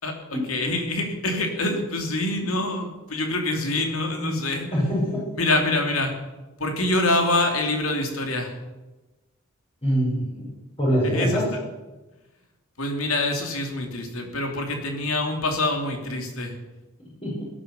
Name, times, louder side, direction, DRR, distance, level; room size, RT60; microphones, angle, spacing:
voice 1, 0.0-4.7 5.4-6.1 6.6-8.5 11.1-11.6 12.8-16.5, left 2 dB, 70° left, 3 dB, 3.1 m, -25 dB
voice 2, 4.7-5.2 9.8-10.4 10.8-11.4 17.2-17.4, equal, 30° left, -6 dB, 5.9 m, -23 dB
17.5 x 11.5 x 7.0 m, 1.1 s
head